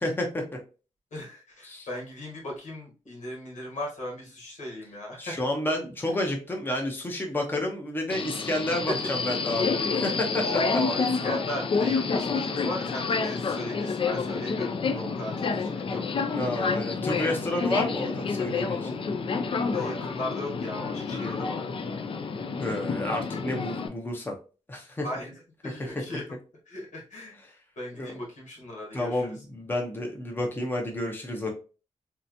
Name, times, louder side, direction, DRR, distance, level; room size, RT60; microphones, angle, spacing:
voice 1, 0.0-0.4 1.6-1.9 5.2-10.4 10.7-10.8 16.3-19.0 22.6-24.3 24.7-25.0 25.6-25.8 28.0-28.1 28.9-31.5, left 1 dB, 15° left, 1 dB, 0.7 m, -30 dB
voice 2, 1.1-5.4 8.9-9.0 10.4-16.0 18.5-18.8 19.7-21.6 25.0-25.3 25.6-26.2 26.7-27.4 27.8-29.2, left 1 dB, 90° left, -1 dB, 1.6 m, -37 dB
Subway metro underground, 8.1-23.9, left 4 dB, 45° left, 0.4 m, -29 dB
3.3 x 2.8 x 2.6 m, 0.34 s
wide cardioid pair, 125°, 12 cm